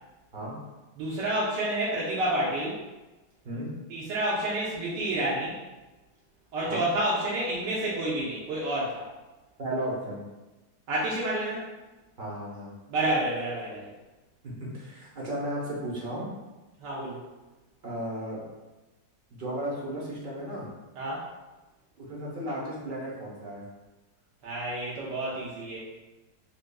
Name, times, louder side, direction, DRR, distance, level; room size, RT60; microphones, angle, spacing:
voice 1, 1.0-2.8 3.9-5.6 6.5-9.1 10.9-11.7 12.9-13.9 16.8-17.2 21.0-21.3 24.4-25.8, right 1 dB, 75° right, -6 dB, 1.4 m, -29 dB
voice 2, 9.6-10.2 12.2-12.7 14.4-16.3 17.8-18.4 19.3-20.7 22.0-23.6, right 1 dB, 45° right, -4 dB, 0.7 m, -34 dB
3.8 x 3.6 x 2.2 m, 1.1 s
omnidirectional pair, 2.0 m